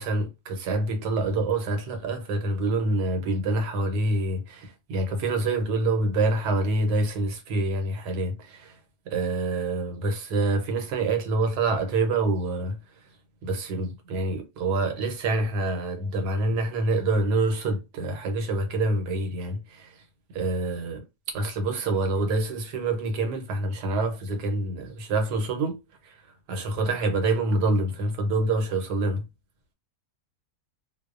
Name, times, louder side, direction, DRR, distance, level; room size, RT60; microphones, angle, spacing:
voice 1, 0.0-8.8 9.1-12.8 13.4-20.0 20.3-21.0 21.3-26.2 26.5-29.2, right 2 dB, 85° right, 1.2 m, -26 dB
2.6 x 2.0 x 2.3 m
omnidirectional pair, 1.7 m